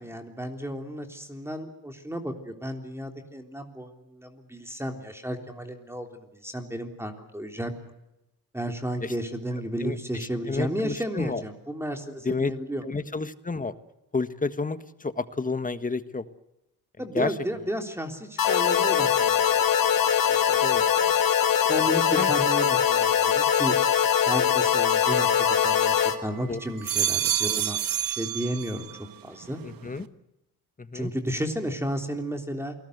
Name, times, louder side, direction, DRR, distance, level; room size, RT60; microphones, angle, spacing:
voice 1, 0.0-7.7 8.5-12.8 17.0-19.6 20.3-20.6 21.7-23.8 24.3-28.9 29.2-29.6 30.9-32.8, equal, 5° right, 4 dB, 3.6 m, -33 dB
voice 2, 10.5-11.4 12.2-12.5 12.8-13.7 14.1-14.8 15.0-16.2 17.1-17.3 20.6-20.8 22.2-22.3 26.5-26.6 27.4-27.6 29.6-30.0 30.8-31.1, left 3 dB, 20° left, 11 dB, 1.5 m, -30 dB
sound 1, 18.4-26.2, left 8 dB, 65° left, 2.3 m, -22 dB
sound 2, 25.1-26.2 26.6-29.1 29.4-30.0, right 11 dB, 65° right, 1.4 m, -29 dB
28.5 x 19.5 x 8.1 m, 0.91 s
cardioid pair, 90°, 38 cm